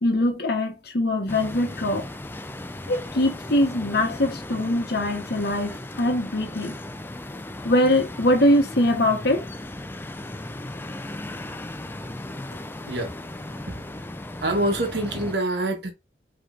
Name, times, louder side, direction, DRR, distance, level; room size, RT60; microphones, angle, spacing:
voice 1, 0.0-2.1 2.9-6.8 7.6-9.4, left 1 dB, 65° left, 1.1 m, -22 dB
sound 1, 1.3-15.4, left 1 dB, 10° left, 0.4 m, -36 dB
voice 2, 14.4-15.9, right 1 dB, 70° right, 1.1 m, -25 dB
5.1 x 3.0 x 2.5 m
head